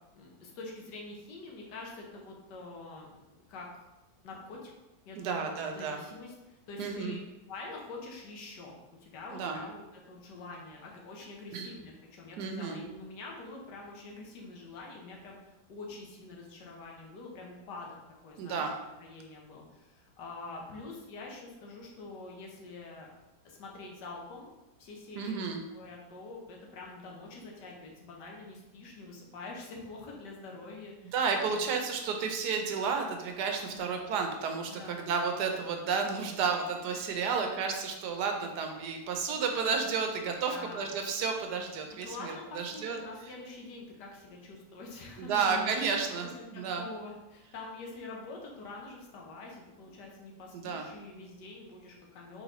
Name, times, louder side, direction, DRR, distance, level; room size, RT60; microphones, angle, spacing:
voice 1, 0.1-3.9 4.2-4.7 5.1-7.2 7.5-17.9 18.2-18.7 19.0-23.1 23.4-24.5 24.8-31.1 31.4-31.6 33.7-34.0 34.7-35.0 40.5-40.9 42.0-52.4, left 3 dB, 85° left, -1 dB, 1.5 m, -46 dB
voice 2, 5.2-6.0 6.8-7.2 9.3-9.6 11.5-11.7 12.4-12.8 18.4-18.7 25.2-25.6 31.1-43.0 45.2-46.8 50.5-50.8, right 5 dB, 80° right, 4 dB, 1.2 m, -32 dB
4.2 x 4.0 x 3.0 m, 1.0 s
omnidirectional pair, 1.8 m